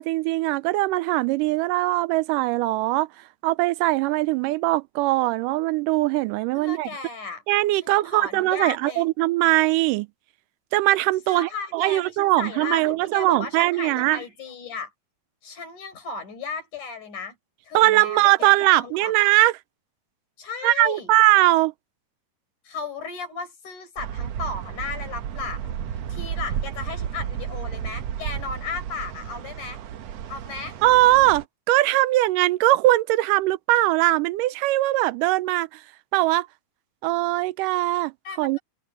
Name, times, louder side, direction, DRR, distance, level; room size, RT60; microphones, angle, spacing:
voice 1, 0.0-3.1 3.4-6.9 7.5-10.1 10.7-14.2 17.7-19.5 20.6-21.7 30.8-35.8 36.1-36.5 37.0-38.1 38.4-38.6, right 18 dB, 90° right, 2.2 m, -21 dB
voice 2, 6.5-7.4 7.8-9.1 11.3-14.9 15.4-17.4 17.6-19.1 20.4-21.1 22.6-25.8 26.1-29.8 30.3-30.8 38.2-38.6, left 4 dB, 70° left, 6.1 m, -35 dB
sound 1, 24.0-31.4, right 9 dB, 65° right, 1.8 m, -32 dB
omnidirectional pair, 3.7 m